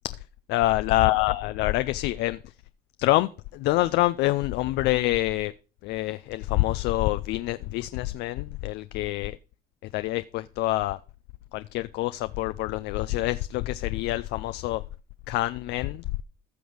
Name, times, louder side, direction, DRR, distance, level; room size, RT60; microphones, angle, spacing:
voice 1, 0.5-2.4 3.0-5.5 5.8-9.4 9.9-11.0 11.5-14.8 15.3-16.0, left 17 dB, 85° left, 0.5 m, -26 dB
14.5 x 6.2 x 5.1 m
cardioid pair, 110°, 17 cm